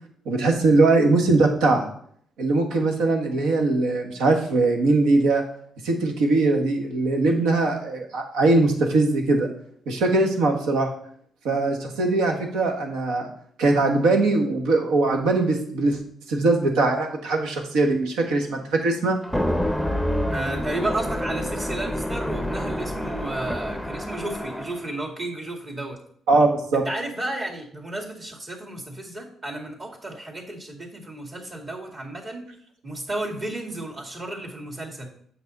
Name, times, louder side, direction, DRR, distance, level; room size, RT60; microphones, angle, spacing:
voice 1, 0.2-1.9 2.4-5.4 5.8-9.5 9.9-10.9 11.4-13.3 13.6-16.0 16.3-19.2 26.3-26.8, right 3 dB, 90° right, 2 dB, 1.4 m, -21 dB
sound 1, 19.2-24.9, equal, ahead, 0.7 m, -28 dB
voice 2, 20.3-26.0 26.7-32.4 32.8-35.1, right 1 dB, 35° right, 0 dB, 2.2 m, -32 dB
8.3 x 6.1 x 4.0 m, 0.62 s
cardioid pair, 90°, 0 cm